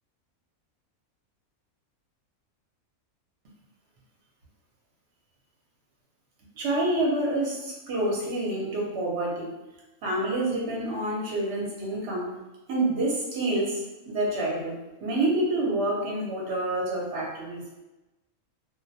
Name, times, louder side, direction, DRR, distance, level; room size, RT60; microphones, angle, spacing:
voice 1, 6.6-9.5 10.0-12.3 12.7-17.6, right 1 dB, 55° right, -3 dB, 0.8 m, -28 dB
2.5 x 2.1 x 2.6 m, 1.0 s
omnidirectional pair, 1.5 m